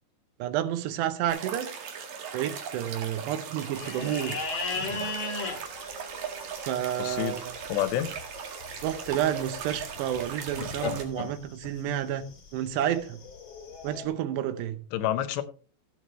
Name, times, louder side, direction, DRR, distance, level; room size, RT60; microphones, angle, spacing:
voice 1, 0.4-1.7 2.3-4.4 6.6-7.5 8.8-12.3 12.5-13.2 13.8-14.8, right 11 dB, 80° right, 3.0 m, -30 dB
sound 1, 1.3-11.0, right 7 dB, 60° right, 3.3 m, -39 dB
sound 2, 3.7-14.0, left 4 dB, 40° left, 2.0 m, -38 dB
voice 2, 4.7-5.1 7.0-8.1 14.9-15.4, left 12 dB, 80° left, 3.0 m, -30 dB
16.0 x 8.4 x 3.2 m
omnidirectional pair, 5.0 m